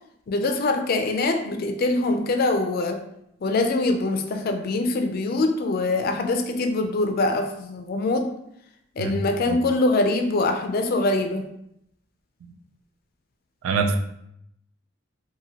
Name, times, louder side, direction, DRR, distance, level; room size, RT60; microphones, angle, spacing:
voice 1, 0.3-3.0 3.4-8.3 9.0-11.5, left 2 dB, 45° left, 5 dB, 0.3 m, -23 dB
voice 2, 13.6-14.0, right 4 dB, 85° right, 6 dB, 0.3 m, -24 dB
2.8 x 2.6 x 2.7 m, 0.77 s
head